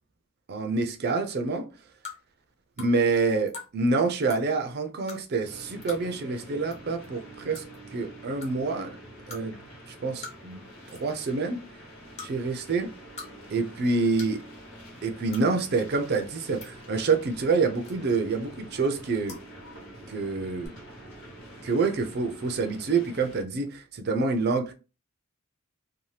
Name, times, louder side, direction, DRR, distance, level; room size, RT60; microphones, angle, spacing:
voice 1, 0.5-1.7 2.8-7.6 7.9-9.0 9.3-9.6 9.9-10.6 10.9-11.6 12.2-12.9 13.5-14.4 15.0-19.4 20.1-20.7 21.6-24.7, right 4 dB, 50° right, 0.4 m, -27 dB
sound 1, 2.0-2.2 2.8-2.9 3.5-3.7 4.2-4.4 5.1-5.2 5.8-6.0 6.7-6.8 7.0-7.1 7.5-7.8 8.4-8.5 9.3-9.4 10.2-10.5 10.8-11.1 12.1-12.3 12.9-13.3 13.6-13.7 14.2-14.4 15.3-15.4 16.3-16.7 17.8-18.2 19.2-19.4 20.6-20.7, left 4 dB, 30° left, 0.7 m, -41 dB
sound 2, 5.4-23.4, right 1 dB, 90° left, 1.2 m, -47 dB
2.7 x 2.1 x 3.2 m
head